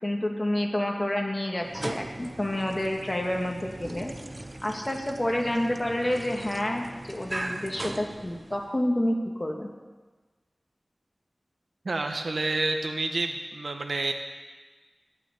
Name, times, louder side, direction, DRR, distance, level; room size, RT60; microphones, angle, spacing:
voice 1, 0.0-4.1 4.6-9.7, left 1 dB, 30° left, 1 dB, 2.1 m, -29 dB
sound 1, 1.6-8.8, right 1 dB, 35° right, 0.8 m, -39 dB
voice 2, 11.8-14.1, right 2 dB, 80° right, 5 dB, 1.3 m, -29 dB
18.5 x 6.2 x 9.3 m, 1.3 s
wide cardioid pair, 60°, 0 cm